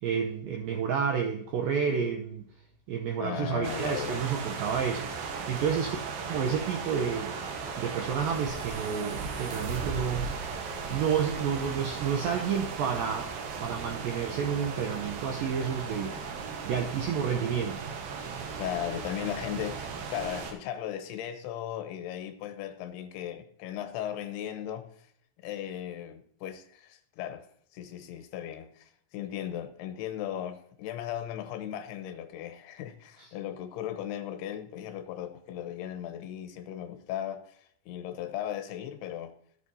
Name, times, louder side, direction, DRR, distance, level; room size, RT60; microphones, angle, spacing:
voice 1, 0.0-2.4 2.9-6.0 6.3-7.4 7.8-10.3 10.9-13.3 13.6-16.2 16.6-17.9 33.2-33.3, right 7 dB, 85° right, 2.0 m, -30 dB
voice 2, 3.2-4.3 10.8-11.0 18.6-24.9 25.4-27.5 27.7-37.6 37.9-39.3, left 10 dB, 75° left, 2.6 m, -37 dB
sound 1, 3.6-20.5, right 5 dB, 65° right, 2.6 m, -37 dB
13.5 x 8.2 x 2.7 m
omnidirectional pair, 5.1 m